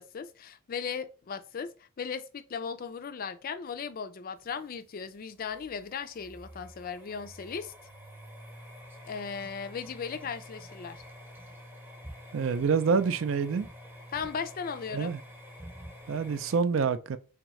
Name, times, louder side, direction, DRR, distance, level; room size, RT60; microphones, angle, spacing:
voice 1, 0.0-1.7 2.0-7.7 9.1-11.0 14.1-15.1, left 6 dB, 40° left, 0.3 m, -37 dB
sound 1, 4.4-16.6, equal, 10° right, 0.7 m, -48 dB
voice 2, 12.3-13.7 14.9-15.2 16.1-17.2, right 5 dB, 60° right, 0.4 m, -27 dB
3.6 x 3.5 x 3.0 m
head